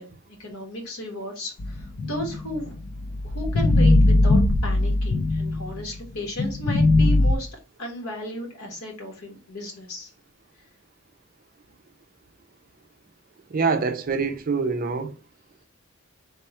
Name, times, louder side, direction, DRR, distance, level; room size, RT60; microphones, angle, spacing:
voice 1, 0.0-2.7 3.2-10.1, left 1 dB, 75° left, 1.4 m, -35 dB
sound 1, 1.6-5.9 6.4-7.3, left 2 dB, 45° left, 0.4 m, -20 dB
voice 2, 13.5-15.2, right 4 dB, 40° right, 0.4 m, -25 dB
3.5 x 2.2 x 4.2 m
head